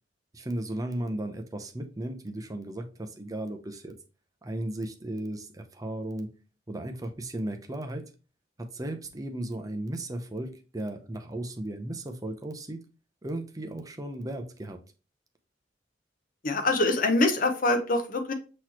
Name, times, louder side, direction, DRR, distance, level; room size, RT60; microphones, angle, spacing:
voice 1, 0.3-3.9 4.4-6.4 6.7-8.1 8.6-12.8 13.2-14.8, right 1 dB, 20° right, 0.6 m, -35 dB
voice 2, 16.4-18.3, left 2 dB, 45° left, 0.9 m, -24 dB
6.0 x 3.1 x 2.9 m
head